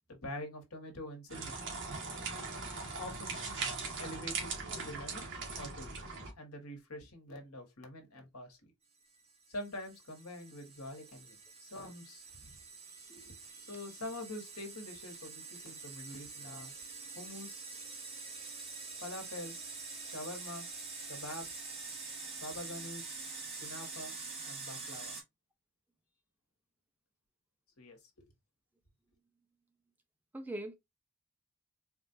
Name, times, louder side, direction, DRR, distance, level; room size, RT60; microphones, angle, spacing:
voice 1, 0.1-1.6 3.0-3.4 4.0-5.2 5.5-5.9 6.4-8.6 9.5-12.5 13.1-13.4 13.7-16.7 17.1-17.7 19.0-19.5 20.0-20.7 21.1-21.6 22.4-23.2 23.6-24.2 24.4-25.2 27.8-28.3, left 1 dB, 80° left, 1.4 m, -45 dB
sound 1, 1.3-6.3, right 4 dB, 55° right, 1.4 m, -40 dB
sound 2, 9.2-25.2, right 4 dB, 25° right, 1.4 m, -46 dB
voice 2, 30.3-30.7, right 1 dB, 10° right, 0.5 m, -41 dB
4.3 x 2.4 x 2.7 m
head